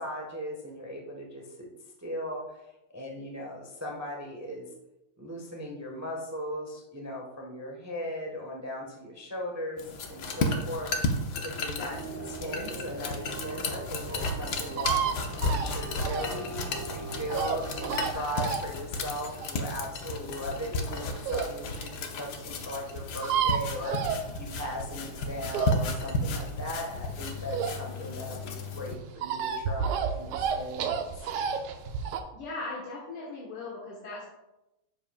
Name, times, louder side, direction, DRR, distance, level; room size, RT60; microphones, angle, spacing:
voice 1, 0.0-1.7 2.0-2.6 2.9-4.6 5.2-10.9 11.4-15.0 15.5-31.0, left 1 dB, 10° right, -1 dB, 0.7 m, -38 dB
sound 1, 9.8-28.9, left 2 dB, 60° left, 1.2 m, -33 dB
sound 2, 11.9-18.1, right 4 dB, 55° right, 1.2 m, -41 dB
sound 3, 13.0-21.6 22.0-22.1 22.3-22.4 22.6-22.7 22.9-24.8 25.1-28.1 28.4-32.2, right 6 dB, 85° right, 1.6 m, -31 dB
voice 2, 32.3-34.2, left 3 dB, 85° left, -4 dB, 2.3 m, -38 dB
9.8 x 7.3 x 2.3 m, 0.95 s
omnidirectional pair, 2.3 m